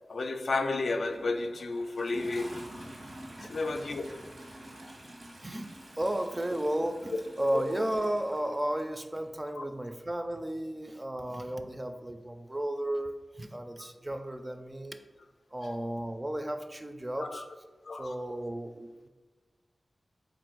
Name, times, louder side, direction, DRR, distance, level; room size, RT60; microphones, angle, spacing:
voice 1, 0.1-2.7 3.4-4.2 7.5-7.7 9.6-9.7 17.2-17.4 17.9-18.2, left 3 dB, 75° left, 0.3 m, -32 dB
Toilet flush, 0.8-9.3 10.3-10.4, right 1 dB, 70° right, 1.0 m, -48 dB
voice 2, 5.4-15.0 15.5-17.5 17.9-19.1, right 1 dB, 25° right, 0.4 m, -34 dB
3.7 x 2.5 x 4.5 m
cardioid pair, 40°, 0 cm